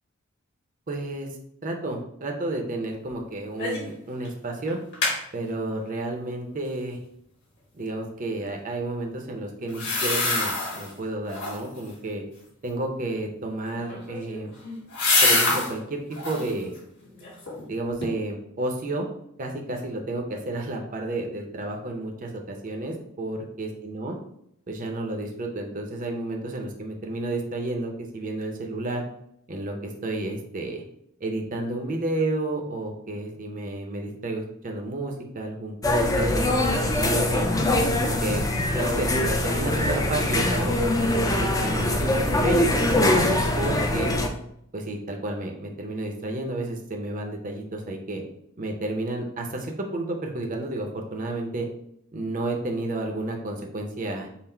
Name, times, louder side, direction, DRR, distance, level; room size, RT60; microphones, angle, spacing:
voice 1, 0.9-1.3 1.6-4.8 5.3-7.0 7.7-12.2 12.6-14.5 15.2-16.0 16.3-16.7 17.7-19.1 19.4-24.2 24.7-29.0 29.5-30.8 31.2-37.5 38.0-38.4 38.7-44.1 44.7-48.2 48.6-51.7 52.1-54.3, right 2 dB, 40° right, 2 dB, 0.6 m, -31 dB
sound 1, 3.6-3.9 4.3-4.4 4.7-5.2 9.7-10.9 11.3-11.8 13.8-15.7 16.1-16.5 17.0-17.7 18.0-18.1, left 3 dB, 55° left, 1.5 m, -25 dB
sound 2, 35.8-44.3, left 1 dB, 15° left, 0.4 m, -23 dB
5.6 x 2.1 x 4.3 m, 0.73 s
head